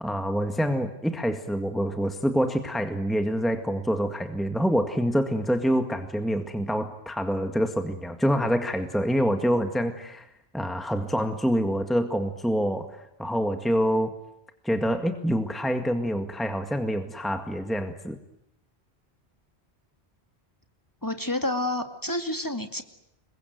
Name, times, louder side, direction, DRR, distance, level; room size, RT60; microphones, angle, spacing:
voice 1, 0.0-10.3 10.5-14.2 14.6-18.2, equal, ahead, 6 dB, 1.8 m, -26 dB
voice 2, 21.0-22.8, left 1 dB, 20° left, 7 dB, 2.5 m, -29 dB
28.0 x 23.0 x 9.4 m, 0.81 s
omnidirectional pair, 1.1 m